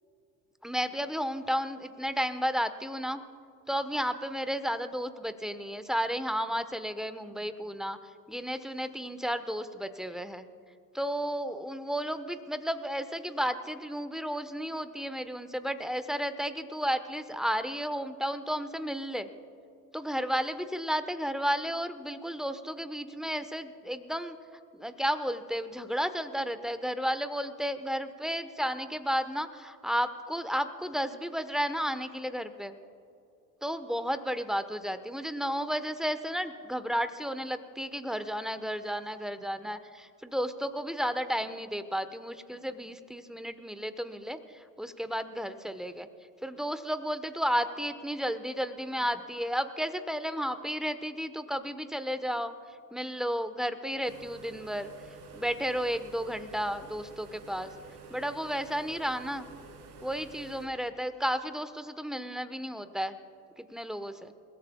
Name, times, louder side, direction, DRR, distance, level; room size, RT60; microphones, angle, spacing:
voice 1, 0.6-3.2 3.7-10.5 10.9-19.3 19.9-24.4 24.7-32.8 33.6-46.1 46.4-52.5 52.9-54.9 55.3-57.7 58.1-59.5 60.0-63.2 63.6-64.3, equal, ahead, 10 dB, 1.1 m, -33 dB
sound 1, 54.0-60.7, right 4 dB, 80° right, 2.9 m, -49 dB
28.5 x 16.5 x 2.3 m, 2.5 s
hypercardioid pair, 65°, 46 cm